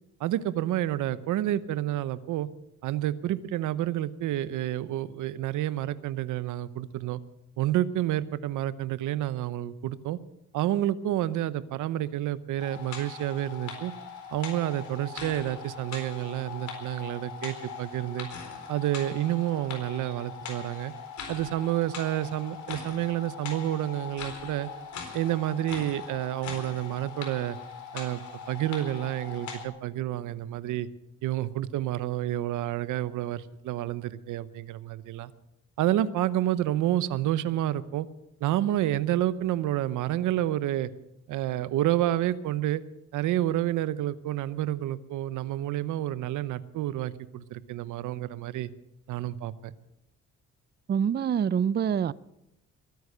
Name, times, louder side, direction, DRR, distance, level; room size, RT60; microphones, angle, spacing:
voice 1, 0.2-2.5 2.8-7.2 7.6-10.2 10.5-13.9 14.3-18.3 18.7-20.9 21.3-24.7 25.1-27.6 27.9-28.2 28.5-30.9 31.2-35.3 35.8-38.1 38.4-40.9 41.3-42.8 43.1-48.7 49.1-49.7, right 13 dB, 85° right, 0.8 m, -29 dB
sound 1, 12.6-29.6, left 6 dB, 70° left, 4.2 m, -41 dB
voice 2, 50.9-52.1, right 8 dB, 35° right, 0.5 m, -25 dB
21.5 x 9.6 x 6.7 m
cardioid pair, 90°, 30 cm